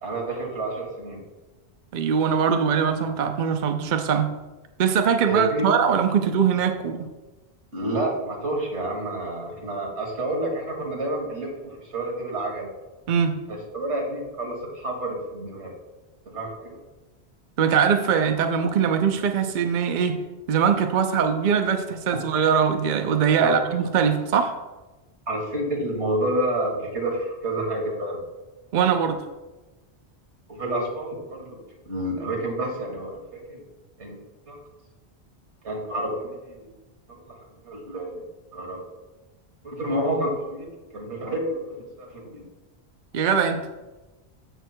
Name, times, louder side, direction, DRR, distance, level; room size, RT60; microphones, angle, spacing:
voice 1, 0.0-1.2 5.3-5.7 7.7-12.7 13.5-15.7 16.3-16.8 23.4-23.6 25.3-28.2 30.5-31.6 31.9-33.6 34.0-34.2 34.5-34.6 35.6-36.7 37.1-37.3 37.6-38.2 38.5-38.8 39.6-40.7 40.9-42.4, right 1 dB, 85° right, -1 dB, 2.4 m, -29 dB
voice 2, 1.9-4.3 4.8-7.1 13.1-13.4 17.6-20.2 20.5-24.5 28.7-29.2 43.1-43.6, right 7 dB, 55° right, 6 dB, 0.7 m, -22 dB
14.5 x 6.1 x 2.2 m, 1.1 s
omnidirectional pair, 1.1 m